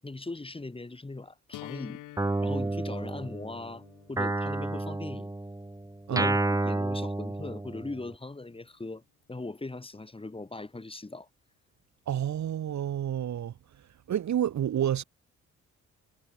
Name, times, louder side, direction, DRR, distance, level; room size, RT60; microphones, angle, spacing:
voice 1, 0.0-2.0 2.4-5.3 6.1-9.0 9.3-11.3, left 2 dB, 20° left, 7.2 m, -39 dB
sound 1, 1.5-7.5, left 15 dB, 90° left, 5.5 m, -50 dB
Guitar, 2.2-3.7 4.2-8.1, right 2 dB, 10° right, 2.1 m, -30 dB
voice 2, 12.1-13.5 14.1-15.0, right 10 dB, 65° right, 6.7 m, -29 dB
cardioid pair, 90°, 30 cm